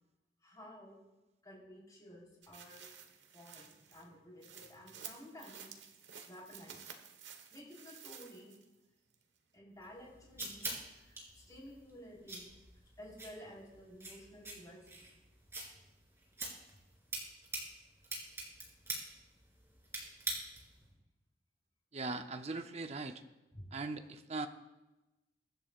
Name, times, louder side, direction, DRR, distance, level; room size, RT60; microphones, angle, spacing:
voice 1, 0.4-1.0 1.4-2.9 3.3-5.7 6.2-6.9 7.5-8.5 9.5-12.5 13.0-15.1 20.8-20.9 23.5-23.6, equal, 20° left, -4 dB, 4.1 m, -53 dB
sound 1, 2.4-8.7 9.1-9.2, right 8 dB, 85° right, 1.3 m, -53 dB
sound 2, 9.8-20.8, right 2 dB, 15° right, 3.1 m, -45 dB
voice 2, 21.9-23.2 23.7-24.5, right 3 dB, 35° right, 7 dB, 0.7 m, -40 dB
23.0 x 10.5 x 2.5 m, 1.0 s
head